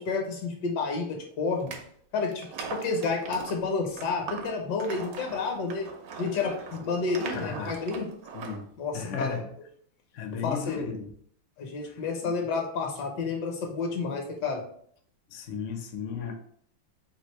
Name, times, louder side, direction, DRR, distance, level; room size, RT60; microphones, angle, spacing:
voice 1, 0.0-1.7 2.1-5.9 6.2-8.1 8.8-9.4 10.4-10.8 11.6-14.6, left 4 dB, 65° left, 2 dB, 1.4 m, -30 dB
sound 1, 1.6-1.8 2.3-8.6, right 5 dB, 70° right, 0.9 m, -40 dB
voice 2, 7.3-7.8 8.3-8.6 8.9-9.5 10.1-11.1 11.9-12.0 12.2-12.3 15.3-16.4, left 6 dB, 80° left, 3 dB, 0.6 m, -34 dB
3.4 x 2.6 x 4.4 m, 0.64 s
omnidirectional pair, 2.1 m